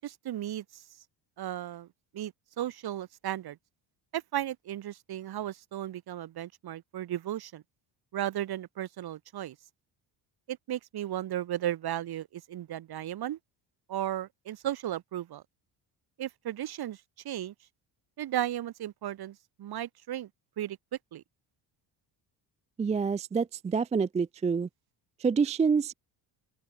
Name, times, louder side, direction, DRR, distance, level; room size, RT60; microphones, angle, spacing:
voice 1, 0.0-0.8 1.4-1.9 2.1-3.6 4.1-7.6 8.1-9.6 10.5-13.4 13.9-15.4 16.2-17.5 18.2-20.3 20.6-20.8 21.1-21.2, right 12 dB, 55° right, 3.9 m, -35 dB
voice 2, 22.8-24.7 25.2-25.9, right 5 dB, 15° right, 0.4 m, -27 dB
open air
cardioid pair, 150°, 45 cm